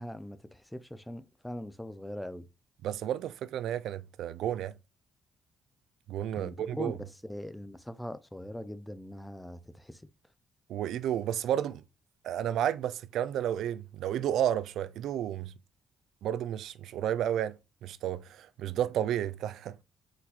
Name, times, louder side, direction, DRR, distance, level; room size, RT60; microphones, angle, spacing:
voice 1, 0.0-2.5 6.4-7.0 7.2-10.0, left 1 dB, 5° left, 0.5 m, -41 dB
voice 2, 2.8-4.7 6.1-6.9 10.7-11.8 12.2-15.5 16.2-19.8, right 10 dB, 80° right, 0.4 m, -32 dB
4.5 x 4.0 x 2.4 m
cardioid pair, 90°, 0 cm